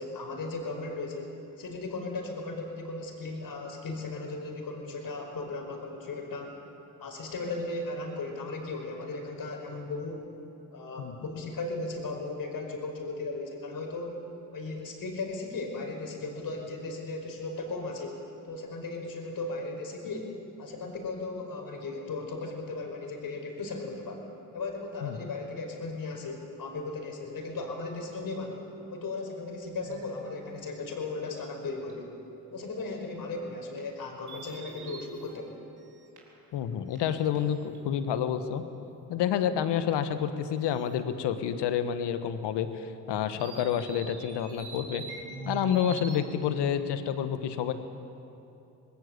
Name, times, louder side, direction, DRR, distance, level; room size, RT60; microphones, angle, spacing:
voice 1, 0.0-6.6 7.0-10.2 10.7-14.2 14.5-28.6 28.9-32.1 32.5-35.5, left 3 dB, 55° left, 2 dB, 5.1 m, -36 dB
sound 1, 29.8-30.9 31.4-31.5 31.9-32.0 33.8-33.9 34.3-36.5 37.0-37.8 39.9-40.0 40.7-41.0 43.4-46.6, right 3 dB, 65° right, 4.3 m, -44 dB
voice 2, 36.5-38.6 39.1-45.0 45.4-47.7, left 9 dB, 70° left, 10 dB, 1.4 m, -29 dB
20.0 x 17.5 x 8.4 m, 2.8 s
hypercardioid pair, 55°, 42 cm